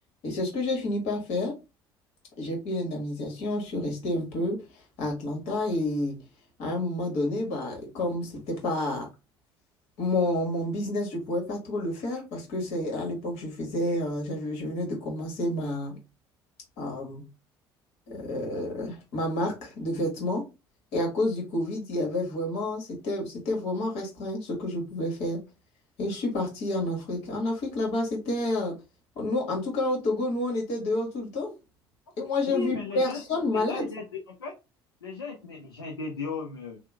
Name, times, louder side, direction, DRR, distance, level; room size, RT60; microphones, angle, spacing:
voice 1, 0.2-1.5 2.4-4.6 5.0-6.2 6.6-9.1 10.0-16.0 16.8-17.2 18.1-20.4 20.9-25.4 26.0-28.7 29.2-31.5 32.2-33.9, left 1 dB, 60° left, 1.3 m, -29 dB
voice 2, 32.5-33.2 33.5-34.5 35.0-36.8, left 4 dB, 80° left, 0.4 m, -35 dB
2.9 x 2.1 x 3.3 m
figure-of-eight pair, 55°, 12 cm